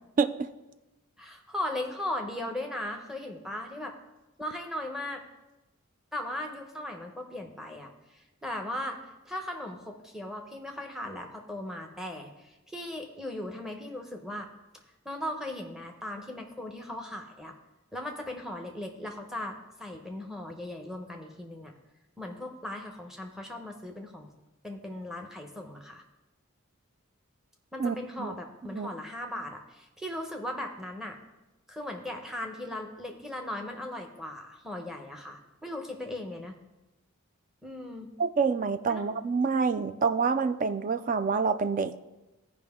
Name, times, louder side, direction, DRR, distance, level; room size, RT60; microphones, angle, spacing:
voice 1, 0.2-0.5 27.8-28.3 28.7-28.9 38.2-41.9, right 5 dB, 40° right, 11 dB, 0.3 m, -27 dB
voice 2, 1.2-3.9 4.4-5.2 6.1-9.0 9.3-14.5 15.0-17.5 17.9-21.7 22.2-24.3 24.6-26.0 27.7-31.2 31.7-36.5 37.6-38.1 38.9-39.0, left 1 dB, ahead, 3 dB, 0.8 m, -38 dB
14.0 x 5.1 x 3.6 m, 1.0 s
head